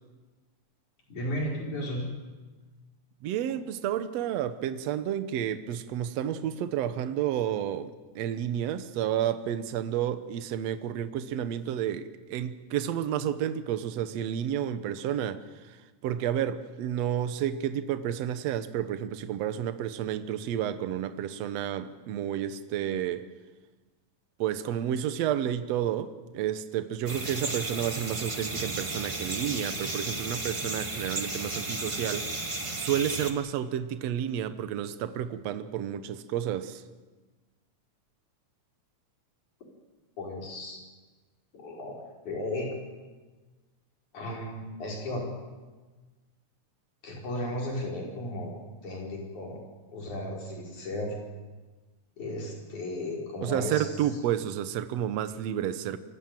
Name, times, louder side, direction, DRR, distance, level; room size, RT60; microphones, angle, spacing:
voice 1, 1.1-2.1 40.2-40.8 41.5-42.0 42.2-42.8 44.1-45.2 47.0-48.5 48.8-49.6 49.9-51.2 52.2-53.9, left 1 dB, 85° left, 6.3 m, -34 dB
voice 2, 3.2-23.2 24.4-32.4 32.8-36.8 53.4-56.0, right 10 dB, 70° right, 2.0 m, -31 dB
sound 1, 27.1-33.3, right 2 dB, 30° right, 0.5 m, -34 dB
25.0 x 15.0 x 9.1 m
omnidirectional pair, 3.4 m